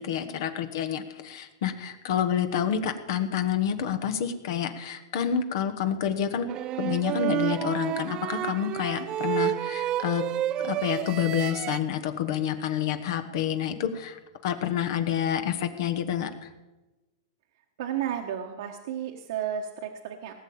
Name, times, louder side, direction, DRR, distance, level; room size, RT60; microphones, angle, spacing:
voice 1, 0.0-6.5 6.8-10.2 10.6-16.5, left 9 dB, 60° left, 8 dB, 1.3 m, -28 dB
sound 1, 6.5-11.8, right 13 dB, 30° right, 0.4 m, -30 dB
voice 2, 17.8-20.3, right 9 dB, 65° right, 2 dB, 1.3 m, -32 dB
18.0 x 7.0 x 8.7 m, 1.1 s
hypercardioid pair, 130°, 2 cm